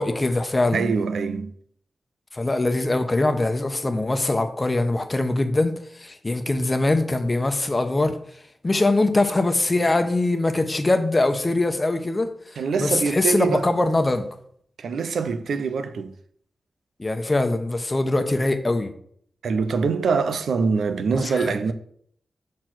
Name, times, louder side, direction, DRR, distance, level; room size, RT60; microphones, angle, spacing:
voice 1, 0.0-0.9 2.3-8.2 8.6-12.3 12.8-14.2 17.0-18.9 21.2-21.5, left 2 dB, 30° left, 1.0 m, -22 dB
voice 2, 0.7-1.5 12.6-13.7 14.8-16.1 19.4-21.7, right 5 dB, 85° right, 0.6 m, -24 dB
6.3 x 4.5 x 6.1 m
cardioid pair, 55°, 0 cm